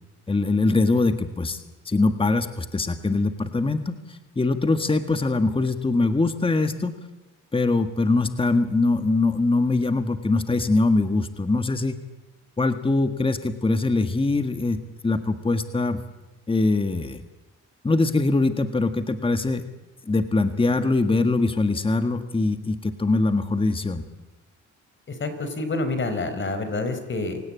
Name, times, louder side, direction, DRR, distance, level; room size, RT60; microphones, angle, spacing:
voice 1, 0.3-1.6 1.9-7.0 7.5-12.0 12.6-14.8 15.0-16.0 16.5-17.2 17.8-19.6 20.0-24.0, left 3 dB, 20° left, 9 dB, 1.7 m, -22 dB
voice 2, 25.1-27.4, left 2 dB, 40° left, 9 dB, 4.4 m, -28 dB
27.5 x 17.5 x 8.6 m, 1.0 s
cardioid pair, 90°, 30 cm